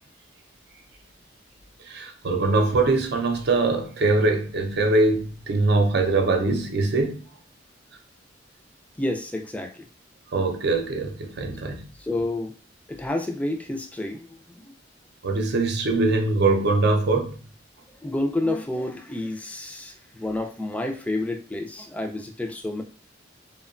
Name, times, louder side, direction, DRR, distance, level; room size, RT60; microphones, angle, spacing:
voice 1, 1.9-7.2 10.3-11.9 15.2-17.4, right 3 dB, 60° right, 4 dB, 0.5 m, -22 dB
voice 2, 9.0-9.9 11.9-12.6 12.9-14.7 17.9-22.8, left 1 dB, 10° left, 3 dB, 0.3 m, -30 dB
2.8 x 2.2 x 2.4 m, 0.37 s
head